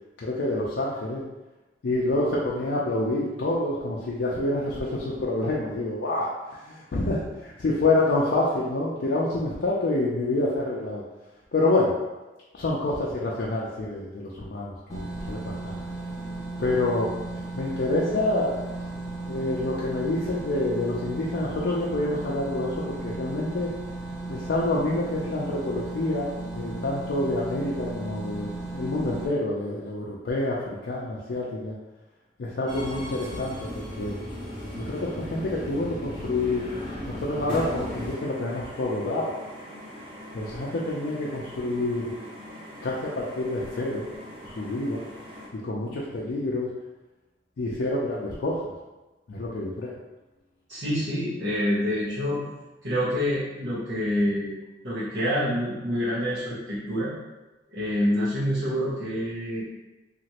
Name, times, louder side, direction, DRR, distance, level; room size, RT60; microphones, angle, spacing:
voice 1, 0.2-1.2 1.8-11.0 11.5-11.9 12.5-15.7 16.6-17.1 17.6-18.6 19.3-23.7 24.3-31.8 32.4-33.7 34.0-34.2 34.8-36.7 37.1-39.3 40.3-42.1 42.8-44.1 44.5-45.0 45.5-46.7 47.6-48.7 49.3-49.9, left 2 dB, 70° left, -5 dB, 0.4 m, -27 dB
sound 1, 14.9-29.3, right 2 dB, 20° left, 0.6 m, -35 dB
Subway metro underground, 32.7-38.1, equal, 60° right, 1.1 m, -36 dB
sound 2, 37.8-45.5, equal, 35° right, 0.9 m, -43 dB
voice 2, 50.7-52.4 52.8-54.5 54.8-57.1 57.7-59.6, equal, 80° right, -12 dB, 0.9 m, -27 dB
2.9 x 2.4 x 2.8 m, 1.1 s
head